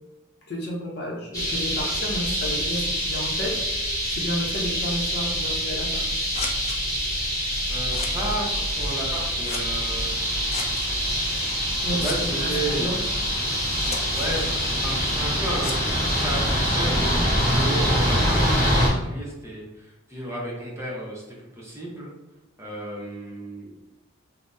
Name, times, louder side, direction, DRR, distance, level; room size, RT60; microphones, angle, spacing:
voice 1, 0.5-6.3 11.8-13.0, equal, 55° left, -2 dB, 0.7 m, -32 dB
sound 1, 1.3-18.9, equal, 15° left, 1.2 m, -25 dB
Scissors, 6.0-17.0, left 3 dB, 30° left, 0.3 m, -40 dB
voice 2, 7.7-10.2 11.9-13.1 14.1-15.8 16.1-22.1 22.6-23.7, right 1 dB, 15° right, -5 dB, 0.6 m, -33 dB
2.7 x 2.0 x 3.4 m, 1.0 s
head